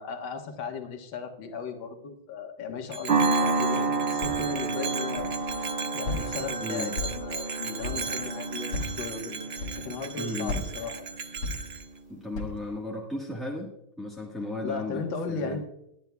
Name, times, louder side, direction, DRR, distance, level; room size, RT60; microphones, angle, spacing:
voice 1, 0.0-5.3 5.9-9.4 9.8-11.1 14.6-15.6, left 5 dB, 65° left, 3 dB, 2.1 m, -36 dB
Bell, 2.9-11.9, right 5 dB, 60° right, 0.6 m, -37 dB
sound 1, 3.1-11.6, right 3 dB, 35° right, 1.4 m, -30 dB
Walk footsteps, 4.2-4.7 5.2-5.7 6.0-6.5 6.9-7.4 7.8-8.2 8.7-9.1 9.6-10.1 10.4-12.0 12.3-12.7, left 2 dB, 90° left, 2.8 m, -35 dB
voice 2, 6.6-6.9 10.2-10.6 12.1-13.7 14.0-15.0 15.3-15.6, left 2 dB, ahead, -3 dB, 1.0 m, -34 dB
21.5 x 10.5 x 2.3 m, 0.81 s
omnidirectional pair, 2.3 m